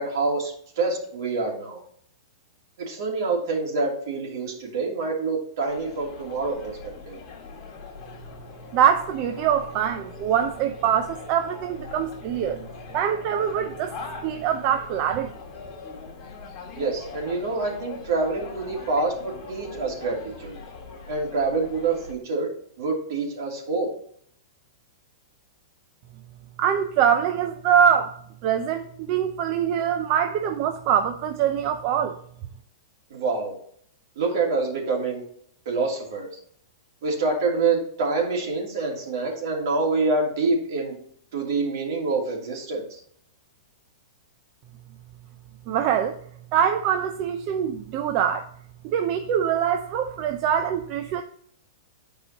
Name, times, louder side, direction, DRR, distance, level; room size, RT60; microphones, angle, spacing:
voice 1, 0.0-1.8 2.8-6.8 7.1-7.2 16.8-20.6 21.1-22.5 22.8-23.9 33.1-33.5 34.2-35.2 35.6-36.3 37.0-40.9 41.3-43.0, right 3 dB, 55° right, 2.8 m, -26 dB
sound 1, 5.7-22.1, left 4 dB, 25° left, 1.9 m, -41 dB
voice 2, 8.7-12.6 12.9-13.9 14.2-15.3 26.6-28.1 28.4-32.2 45.7-46.2 46.5-48.5 48.8-51.2, right 8 dB, 30° right, 0.5 m, -23 dB
10.5 x 4.8 x 2.9 m
supercardioid pair, 165°, 2 cm